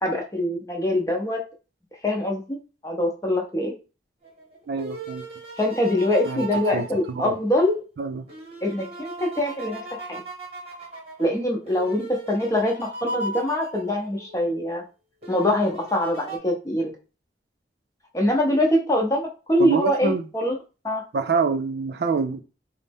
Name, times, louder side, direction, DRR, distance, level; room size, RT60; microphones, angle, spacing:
voice 1, 0.0-1.4 2.0-2.6 2.8-3.7 5.6-7.8 8.6-10.2 11.2-14.8 15.3-16.9 18.1-20.6 20.8-21.0, left 1 dB, 20° left, 0.7 m, -24 dB
sound 1, 4.2-7.8 8.3-14.5 15.2-16.4, right 2 dB, 35° right, 1.0 m, -37 dB
voice 2, 4.7-5.2 6.3-6.5 6.7-7.4 8.0-8.2 19.6-20.3 21.1-22.4, right 4 dB, 60° right, 0.4 m, -26 dB
4.0 x 2.0 x 3.5 m
head